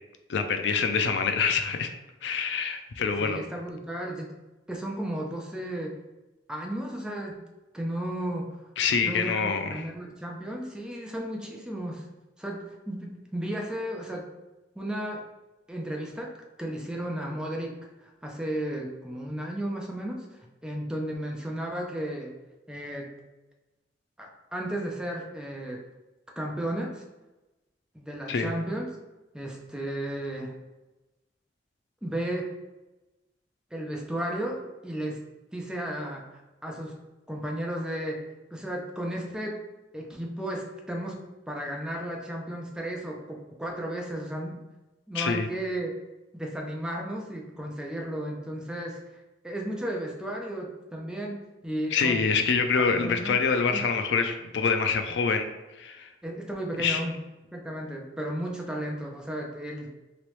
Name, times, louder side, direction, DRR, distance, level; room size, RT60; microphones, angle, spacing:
voice 1, 0.3-1.9 2.2-3.4 8.8-9.8 28.3-28.5 45.1-45.5 51.9-55.5 55.8-56.1 56.8-57.0, left 5 dB, 80° left, 7 dB, 0.4 m, -26 dB
voice 2, 3.2-4.4 4.7-6.0 6.5-7.5 7.7-8.5 9.0-12.1 12.4-14.3 14.8-15.2 15.7-20.3 20.6-22.3 22.7-23.1 24.2-25.8 26.4-27.0 27.9-28.9 29.3-30.5 32.0-32.5 33.7-35.2 35.5-37.0 37.3-39.6 39.9-41.2 41.5-44.6 45.1-45.9 46.3-49.0 49.4-52.4 53.0-53.4 53.7-53.8 56.2-57.2 57.5-59.9, right 1 dB, 5° right, -1 dB, 0.5 m, -34 dB
3.1 x 2.9 x 3.1 m, 1.1 s
head